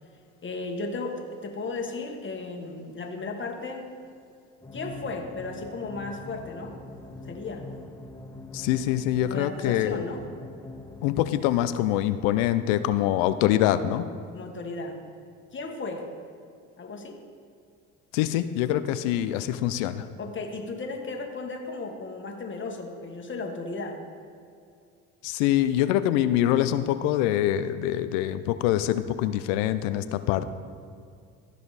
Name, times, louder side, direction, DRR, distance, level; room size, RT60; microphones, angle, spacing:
voice 1, 0.4-3.9 4.7-6.8 7.2-7.7 9.2-10.2 14.3-15.0 15.5-16.1 16.8-17.2 20.2-24.0, left 3 dB, 30° left, 3 dB, 1.4 m, -35 dB
sound 1, 4.6-11.7, left 2 dB, 5° left, 1.1 m, -43 dB
voice 2, 8.5-10.0 11.0-14.1 18.1-20.1 25.2-30.5, left 12 dB, 85° left, 12 dB, 0.5 m, -24 dB
14.5 x 5.0 x 4.0 m, 2.4 s
supercardioid pair, 70°, 37 cm